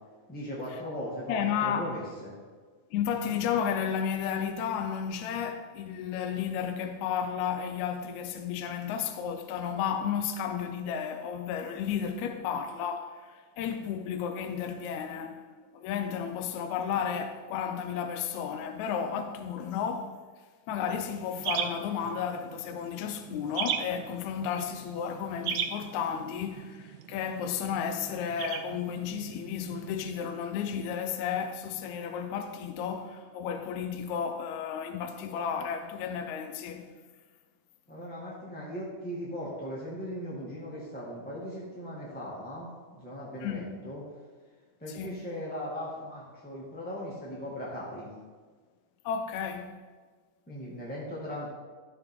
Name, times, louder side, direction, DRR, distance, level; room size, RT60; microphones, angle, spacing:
voice 1, 0.3-2.3 37.9-44.0 44.8-48.1 50.5-51.5, equal, 5° left, 1.3 m, -38 dB
voice 2, 1.3-1.9 2.9-15.5 15.7-20.2 20.7-36.9 43.4-43.8 44.9-45.3 49.1-49.8, left 7 dB, 75° left, 2.0 m, -33 dB
sound 1, 20.8-30.1, right 8 dB, 80° right, 2.1 m, -38 dB
13.0 x 7.0 x 3.8 m
omnidirectional pair, 3.6 m